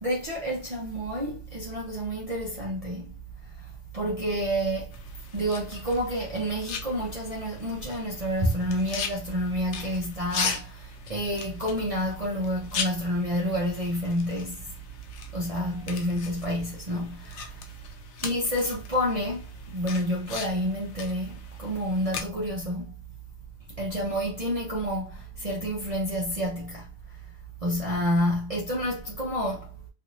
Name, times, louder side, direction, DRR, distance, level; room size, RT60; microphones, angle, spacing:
voice 1, 0.0-3.1 3.9-4.9 5.3-14.6 15.3-17.6 18.2-22.9 23.8-26.9 27.6-29.7, equal, 35° right, 0.7 m, -29 dB
sound 1, 4.9-22.2, left 5 dB, 70° left, 0.9 m, -39 dB
3.1 x 2.5 x 2.6 m
omnidirectional pair, 1.2 m